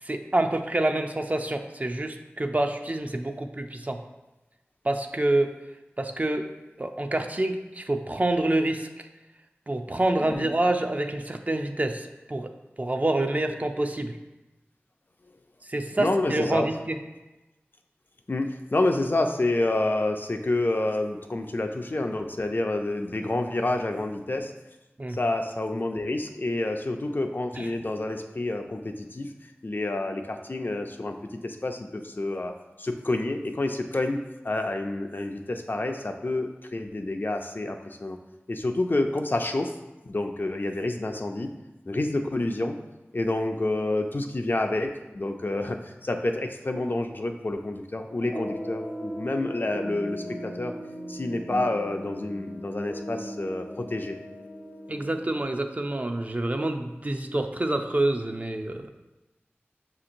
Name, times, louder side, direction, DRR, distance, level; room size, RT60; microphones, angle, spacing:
voice 1, 0.0-4.0 4.8-5.5 6.0-6.5 6.8-9.1 9.7-12.5 12.8-14.2 15.7-17.0 25.0-25.2 27.5-27.7 54.9-58.9, right 1 dB, 35° right, 5 dB, 0.3 m, -27 dB
voice 2, 16.0-16.7 18.3-24.5 25.2-29.3 29.6-31.1 31.4-32.5 32.8-34.2 34.4-38.2 38.5-39.7 40.0-41.5 41.9-42.8 43.1-50.7 51.1-54.1, left 2 dB, 50° left, 4 dB, 0.4 m, -28 dB
sound 1, 48.2-55.4, equal, 70° left, 0.8 m, -38 dB
6.3 x 2.9 x 2.5 m, 1.0 s
wide cardioid pair, 50°, 4 cm